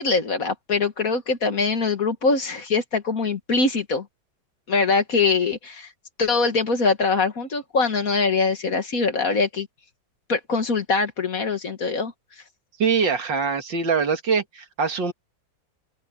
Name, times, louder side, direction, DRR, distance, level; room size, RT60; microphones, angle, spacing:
voice 1, 0.0-4.1 4.7-5.9 6.2-9.7 10.3-12.1, left 4 dB, 45° left, 2.0 m, -23 dB
voice 2, 12.8-15.1, right 5 dB, 70° right, 2.6 m, -23 dB
open air
omnidirectional pair, 2.1 m